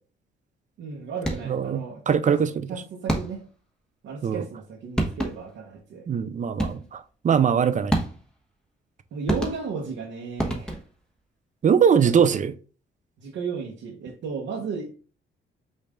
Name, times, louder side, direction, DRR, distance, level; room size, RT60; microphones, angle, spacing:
voice 1, 0.8-2.4 2.7-3.4 4.0-6.1 9.1-10.8 12.1-12.3 13.2-14.9, right 5 dB, 80° right, 1.0 m, -34 dB
sound 1, 1.2-1.7 3.1-3.6 4.6-4.7 5.0-5.6 6.6-7.0 7.9-8.4 9.3-9.9 10.4-11.1, right 1 dB, 5° left, 1.2 m, -29 dB
voice 2, 1.5-1.8 2.1-2.7 4.2-4.4 6.1-7.9 11.6-12.5, right 7 dB, 40° right, 0.5 m, -21 dB
5.4 x 2.6 x 3.6 m
cardioid pair, 90°, 20 cm